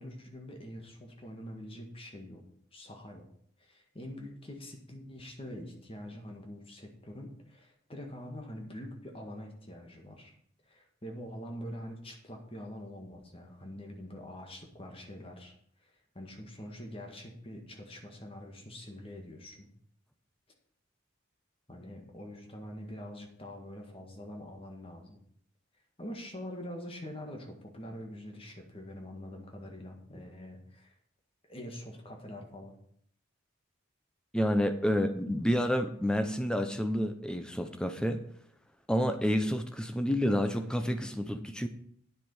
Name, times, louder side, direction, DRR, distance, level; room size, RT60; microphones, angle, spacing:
voice 1, 0.0-2.4 2.7-3.3 3.6-10.3 10.7-15.6 15.8-15.9 16.2-19.7 21.7-25.2 26.0-30.9 31.5-32.8 34.9-35.0, equal, 30° left, 2 dB, 1.8 m, -45 dB
voice 2, 34.3-38.2 38.9-41.7, equal, 5° left, 7 dB, 0.7 m, -29 dB
9.8 x 7.3 x 5.4 m, 0.65 s
head